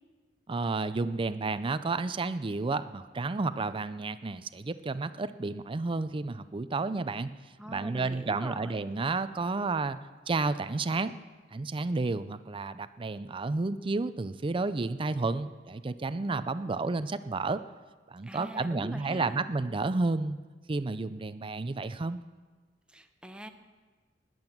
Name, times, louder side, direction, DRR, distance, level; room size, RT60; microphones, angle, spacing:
voice 1, 0.5-7.3 7.7-10.0 10.3-11.1 11.5-17.6 18.1-20.4 20.7-22.2, right 3 dB, 30° right, 13 dB, 0.5 m, -31 dB
voice 2, 7.6-8.7 18.3-19.4 22.9-23.5, equal, 5° right, 7 dB, 0.9 m, -43 dB
19.5 x 7.9 x 7.2 m, 1.4 s
head